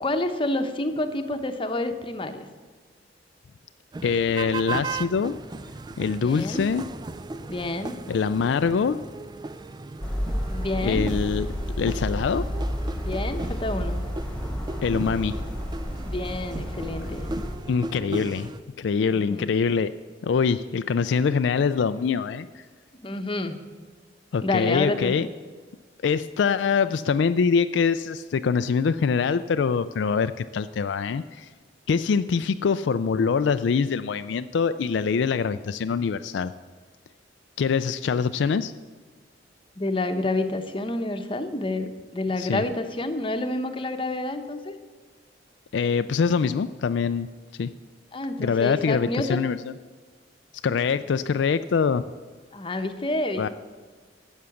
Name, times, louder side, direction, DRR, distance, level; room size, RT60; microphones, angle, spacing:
voice 1, 0.0-2.4 6.1-6.6 7.5-8.0 10.5-11.1 13.0-14.0 16.0-17.3 19.1-19.5 23.0-23.6 24.4-25.1 39.8-44.7 48.1-49.4 52.5-53.5, left 2 dB, 30° left, 7 dB, 0.9 m, -28 dB
sound 1, 3.9-18.6, right 3 dB, 25° right, 0.4 m, -37 dB
voice 2, 4.0-5.3 6.0-6.9 8.1-9.0 10.8-11.5 11.8-12.5 14.8-15.4 17.7-18.5 18.8-19.9 20.2-22.6 24.3-25.3 26.0-31.5 31.9-36.5 37.6-38.7 42.4-42.6 45.7-47.3 47.6-47.7 48.4-49.7 50.6-52.0 53.4-53.5, left 5 dB, 70° left, 11 dB, 0.4 m, -24 dB
sound 2, 10.0-17.6, equal, 5° left, 1.5 m, -31 dB
12.5 x 8.1 x 7.1 m, 1.4 s
head